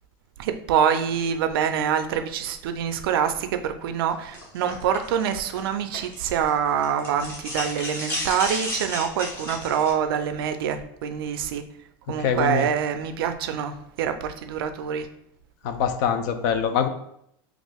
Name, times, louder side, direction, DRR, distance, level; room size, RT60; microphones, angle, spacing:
voice 1, 0.4-11.6 12.1-15.1, right 8 dB, 80° right, 8 dB, 0.4 m, -25 dB
sound 1, 4.3-6.5 6.8-9.9, left 1 dB, 20° left, 1.0 m, -32 dB
voice 2, 12.2-12.7 15.6-16.9, left 7 dB, 50° left, 8 dB, 0.4 m, -24 dB
3.0 x 2.4 x 3.4 m, 0.74 s
supercardioid pair, 165°, 12 cm